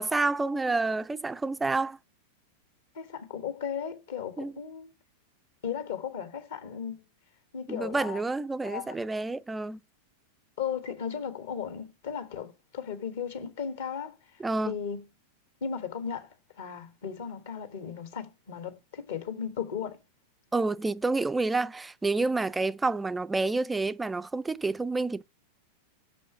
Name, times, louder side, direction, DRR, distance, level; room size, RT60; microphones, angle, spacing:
voice 1, 0.0-2.0 4.4-4.5 7.7-9.8 14.4-14.7 20.5-25.2, right 3 dB, 10° right, 0.4 m, -29 dB
voice 2, 2.9-4.9 5.6-7.0 7.5-8.2 8.6-9.0 10.6-15.0 15.6-20.0, left 7 dB, 60° left, 1.4 m, -36 dB
6.3 x 5.2 x 5.6 m
figure-of-eight pair, 90°, 0 cm